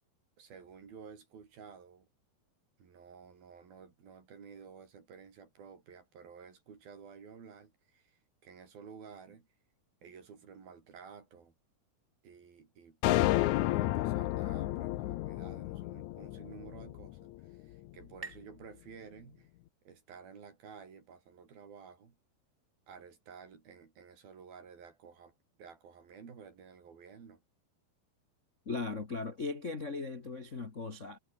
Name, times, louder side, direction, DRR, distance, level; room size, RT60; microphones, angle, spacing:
voice 1, 0.4-2.1 2.8-9.5 10.0-11.5 12.2-13.0 13.3-19.5 19.8-22.2 22.9-27.4, right 6 dB, 75° right, 6.1 m, -53 dB
sound 1, 13.0-17.4, left 16 dB, 80° left, 1.7 m, -31 dB
sound 2, 16.8-20.1, right 4 dB, 25° right, 2.5 m, -54 dB
voice 2, 28.6-31.2, left 3 dB, 35° left, 1.1 m, -38 dB
omnidirectional pair, 4.3 m